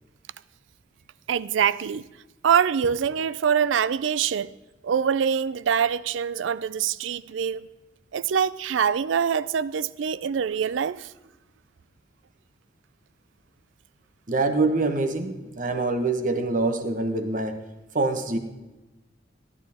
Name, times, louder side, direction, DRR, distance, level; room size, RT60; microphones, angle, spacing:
voice 1, 1.3-2.1 2.4-4.5 4.8-7.7 8.1-11.1, right 7 dB, 85° right, 0.4 m, -24 dB
voice 2, 14.3-17.6 17.9-18.4, right 3 dB, 45° right, 1.1 m, -25 dB
16.0 x 11.0 x 3.5 m
head